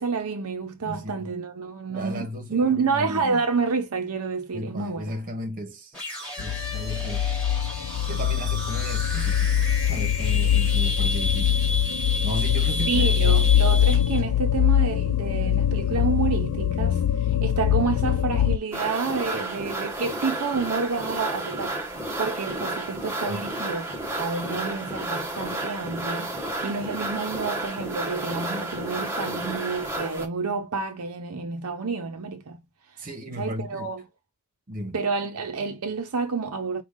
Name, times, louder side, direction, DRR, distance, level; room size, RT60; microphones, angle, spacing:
voice 1, 0.0-5.1 12.9-21.8 22.2-23.9 24.2-26.3 26.6-32.6 33.4-34.0 34.9-36.8, right 4 dB, 75° right, 0.6 m, -29 dB
voice 2, 0.8-1.3 1.9-3.4 4.5-6.0 6.4-7.3 8.1-11.6 12.2-13.6 23.3-23.4 33.0-33.9 34.7-34.9, equal, 40° right, 1.0 m, -35 dB
sound 1, 5.9-14.2, left 1 dB, 5° left, 2.6 m, -32 dB
sound 2, 6.4-18.6, left 10 dB, 70° left, 0.3 m, -23 dB
sound 3, 18.7-30.3, right 1 dB, 10° right, 0.9 m, -31 dB
5.2 x 2.3 x 3.6 m
head